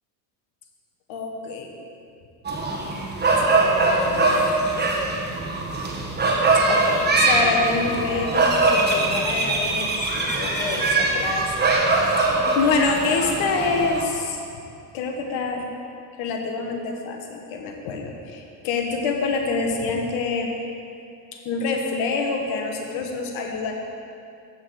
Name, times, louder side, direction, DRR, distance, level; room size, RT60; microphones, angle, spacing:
voice 1, 1.1-1.8 3.3-4.7 6.5-11.5 12.0-14.4 14.9-15.7 16.2-20.5 21.3-23.7, left 4 dB, 70° left, 2 dB, 1.4 m, -26 dB
sound 1, 2.4-14.0, right 3 dB, 20° right, 1.4 m, -22 dB
8.1 x 7.0 x 5.4 m, 2.5 s
supercardioid pair, 90°, 49 cm